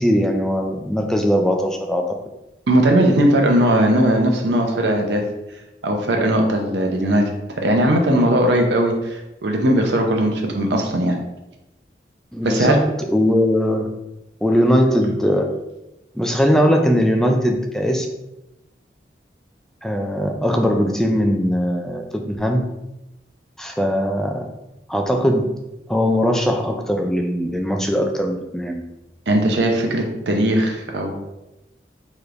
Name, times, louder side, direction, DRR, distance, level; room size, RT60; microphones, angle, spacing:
voice 1, 0.0-2.1 12.3-13.9 14.4-15.5 16.1-18.1 19.8-22.6 23.6-24.4 24.9-25.5 25.9-28.8, equal, 5° left, 2 dB, 0.3 m, -20 dB
voice 2, 2.7-5.2 5.8-7.2 7.6-11.2 12.4-12.8 29.3-31.1, right 1 dB, 75° right, 2 dB, 0.7 m, -18 dB
4.9 x 3.1 x 2.5 m, 0.94 s
head